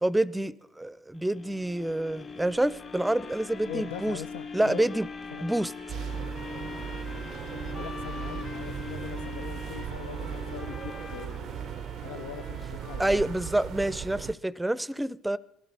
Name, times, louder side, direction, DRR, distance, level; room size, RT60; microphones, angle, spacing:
voice 1, 0.0-4.2 4.5-5.1 5.4-5.7 13.0-15.4, right 1 dB, 10° right, 0.5 m, -27 dB
sound 1, 1.1-13.2 13.7-13.8, left 4 dB, 45° left, 3.1 m, -43 dB
sound 2, 2.8-13.8, left 4 dB, 60° left, 2.1 m, -47 dB
voice 2, 3.7-4.9 5.3-5.5 6.3-6.4 7.8-11.5 12.0-13.3, left 9 dB, 85° left, 0.4 m, -41 dB
sound 3, 5.9-14.3, right 9 dB, 60° right, 0.4 m, -37 dB
20.0 x 12.5 x 4.1 m
hypercardioid pair, 65°, 0 cm